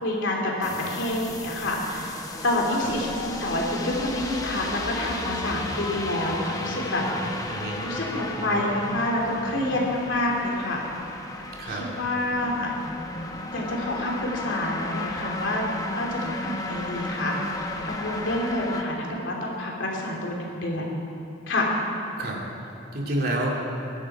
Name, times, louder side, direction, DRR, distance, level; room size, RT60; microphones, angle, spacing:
voice 1, 0.0-2.2 2.4-7.0 7.8-10.9 11.7-12.7 13.5-15.6 15.9-20.9 21.5-21.7, left 1 dB, 70° left, -2 dB, 3.1 m, -28 dB
sound 1, 0.6-18.8, left 1 dB, 20° left, 1.1 m, -34 dB
voice 2, 7.5-7.8 11.6-11.8 12.3-12.6 22.2-23.5, right 1 dB, 50° right, -2 dB, 2.6 m, -30 dB
22.5 x 11.5 x 4.9 m, 2.8 s
head